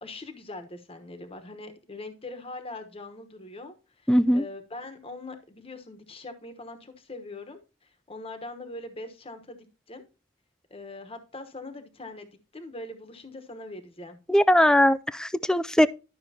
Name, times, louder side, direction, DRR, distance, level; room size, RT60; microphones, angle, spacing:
voice 1, 0.0-10.0 10.7-14.2, left 2 dB, 30° left, 1.2 m, -42 dB
voice 2, 4.1-4.4 14.3-15.9, equal, 5° left, 0.3 m, -20 dB
12.0 x 6.4 x 2.8 m
head